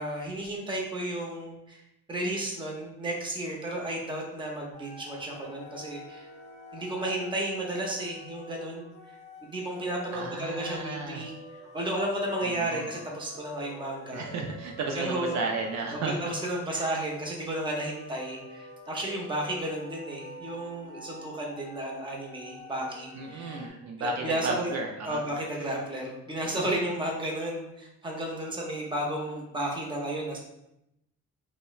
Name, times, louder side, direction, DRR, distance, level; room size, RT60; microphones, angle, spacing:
voice 1, 0.0-1.8 2.1-6.3 6.7-11.3 11.7-14.2 14.9-15.4 15.9-24.7 25.0-30.4, right 1 dB, 15° right, -1 dB, 0.6 m, -33 dB
sound 1, 4.7-23.7, left 1 dB, 25° left, 0.6 m, -47 dB
voice 2, 10.1-11.2 12.4-12.9 14.1-16.1 16.7-16.9 23.1-25.2, right 3 dB, 65° right, 2 dB, 0.4 m, -33 dB
2.9 x 2.1 x 2.3 m, 0.84 s
cardioid pair, 90°, 30 cm